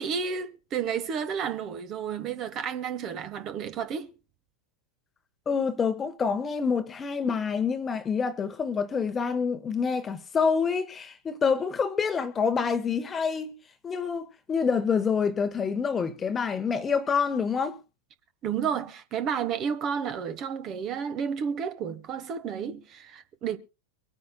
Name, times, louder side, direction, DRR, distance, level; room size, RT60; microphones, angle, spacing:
voice 1, 0.0-4.1 18.4-23.6, right 7 dB, 35° right, 1.3 m, -31 dB
voice 2, 5.5-13.6 13.8-17.8, left 6 dB, 20° left, 1.1 m, -27 dB
24.0 x 9.5 x 2.2 m
figure-of-eight pair, 90°, 0 cm